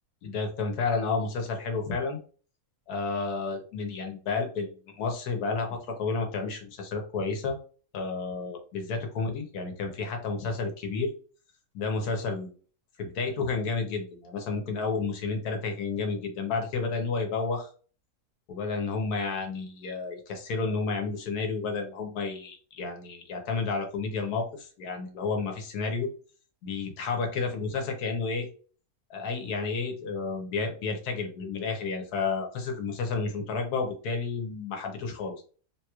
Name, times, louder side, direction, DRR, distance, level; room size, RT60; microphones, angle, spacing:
voice 1, 0.2-2.2 2.9-7.6 7.9-11.1 11.7-12.5 13.0-17.7 18.5-26.1 26.6-28.5 29.1-35.4, left 4 dB, 80° left, 3 dB, 1.3 m, -31 dB
3.6 x 2.9 x 2.3 m, 0.39 s
omnidirectional pair, 1.6 m